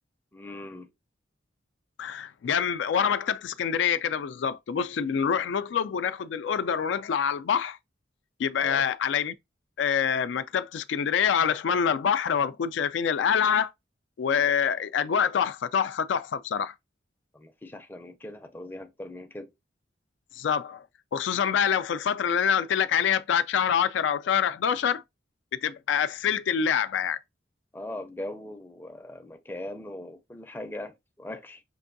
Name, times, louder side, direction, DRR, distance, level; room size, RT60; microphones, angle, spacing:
voice 1, 0.3-0.9 8.5-8.8 17.3-19.5 27.7-31.6, left 1 dB, 10° left, 0.5 m, -40 dB
voice 2, 2.0-7.8 8.4-9.3 9.8-13.7 14.2-16.7 20.3-20.8 21.1-25.0 25.6-27.2, left 7 dB, 80° left, 0.3 m, -26 dB
5.2 x 2.6 x 2.5 m
head